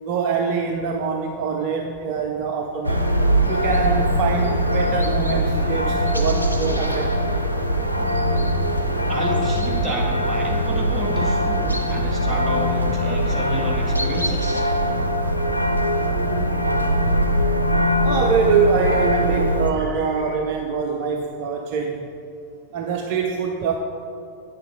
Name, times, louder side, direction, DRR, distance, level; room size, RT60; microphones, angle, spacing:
voice 1, 0.0-3.0 3.5-7.2 16.0-16.6 18.0-22.1 22.7-23.7, right 5 dB, 45° right, 3 dB, 0.6 m, -24 dB
sound 1, 2.8-19.7, equal, 90° right, 0.5 m, -21 dB
voice 2, 9.1-14.6, right 1 dB, 15° right, -3 dB, 1.7 m, -30 dB
8.9 x 6.7 x 4.1 m, 2.6 s
figure-of-eight pair, 90°, 0 cm